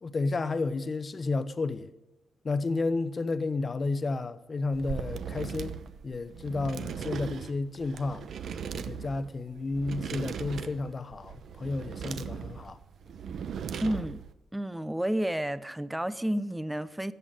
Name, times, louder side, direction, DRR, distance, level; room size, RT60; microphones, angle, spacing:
voice 1, 0.0-1.9 2.4-5.8 6.0-8.2 8.7-12.8, left 3 dB, 30° left, 1.0 m, -31 dB
sound 1, 4.7-14.3, right 7 dB, 65° right, 0.8 m, -38 dB
voice 2, 13.8-14.2 14.5-17.1, right 1 dB, 5° right, 0.6 m, -31 dB
14.0 x 8.3 x 9.1 m
cardioid pair, 125°, 0 cm